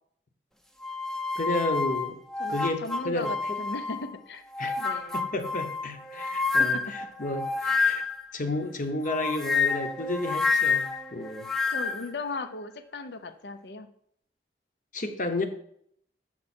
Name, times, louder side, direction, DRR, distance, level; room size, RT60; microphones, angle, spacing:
sound 1, 0.8-4.1 4.5-8.3 9.1-12.1, left 4 dB, 5° left, 0.4 m, -28 dB
voice 1, 1.4-2.2 2.5-3.6 4.6-4.8 5.1-6.8 7.2-8.0 8.3-11.5 14.9-15.4, left 2 dB, 50° left, 1.0 m, -32 dB
voice 2, 2.4-4.5 4.8-5.2 6.6-6.8 11.7-13.9, left 3 dB, 70° left, 0.6 m, -37 dB
7.5 x 6.0 x 4.3 m
head